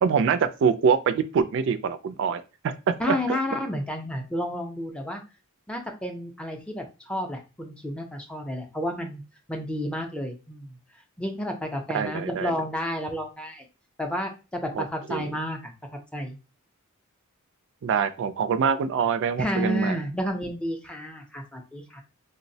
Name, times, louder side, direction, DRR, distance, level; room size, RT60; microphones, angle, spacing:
voice 1, 0.0-2.7 3.0-3.4 11.9-12.5 14.7-15.3 17.8-20.0, right 6 dB, 55° right, 0.3 m, -25 dB
voice 2, 3.0-5.2 5.7-9.2 9.5-10.8 11.2-13.7 14.0-15.7 16.1-16.4 19.4-22.0, left 1 dB, 5° left, 0.5 m, -31 dB
3.8 x 2.0 x 2.6 m
head